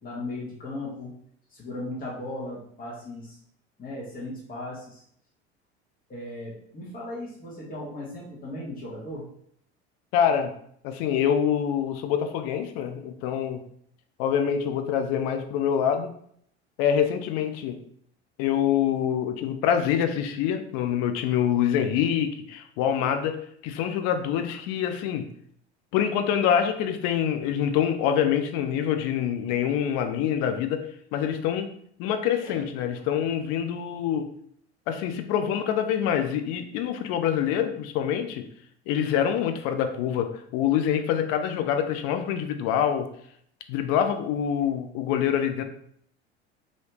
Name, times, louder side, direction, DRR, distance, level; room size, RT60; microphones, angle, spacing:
voice 1, 0.0-1.1 1.5-3.4 3.8-5.0 6.1-9.2 32.4-32.6, left 1 dB, 25° left, -5 dB, 1.2 m, -37 dB
voice 2, 10.1-10.5 10.8-13.6 14.2-16.1 16.8-17.8 18.4-23.4 23.6-25.2 25.9-30.9 31.1-31.7 32.0-34.3 34.9-38.4 38.9-43.1 43.7-45.6, left 9 dB, 45° left, 7 dB, 0.4 m, -25 dB
3.2 x 2.7 x 2.9 m, 0.66 s
figure-of-eight pair, 70°, 33 cm